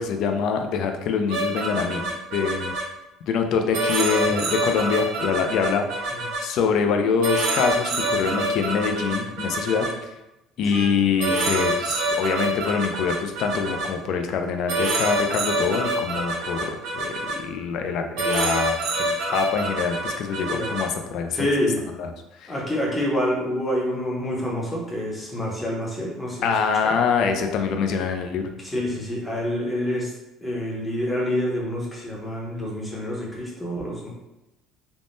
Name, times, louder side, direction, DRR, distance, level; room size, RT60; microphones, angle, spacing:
voice 1, 0.0-2.0 2.3-2.7 3.3-6.1 6.4-10.1 10.6-21.5 22.0-22.1 22.4-22.5 26.4-28.4, left 5 dB, 55° left, 5 dB, 0.3 m, -25 dB
sound 1, 1.3-2.8 3.7-6.4 7.2-9.9 10.7-10.9 11.2-13.9 14.7-17.3 18.2-20.8, right 2 dB, 75° right, 0.7 m, -26 dB
voice 2, 21.3-21.8 22.5-26.5 26.8-27.0 28.6-30.1 30.4-34.1, left 1 dB, 10° left, -3 dB, 0.7 m, -27 dB
3.4 x 2.1 x 2.5 m, 0.95 s
cardioid pair, 155°, 0 cm